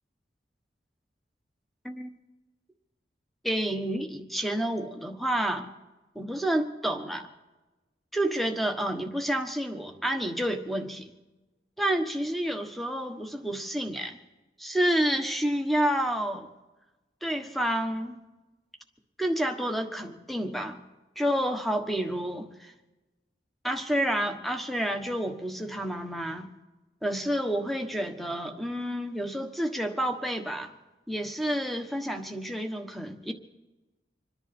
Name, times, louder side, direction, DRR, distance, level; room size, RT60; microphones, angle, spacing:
voice 1, 3.4-5.7 6.1-7.3 8.1-11.1 11.8-14.2 14.6-16.5 17.2-18.2 19.2-20.8 21.2-22.7 23.6-26.5 27.0-30.7 31.1-33.3, right 1 dB, ahead, 5 dB, 1.3 m, -29 dB
26.5 x 10.5 x 4.3 m, 1.1 s
head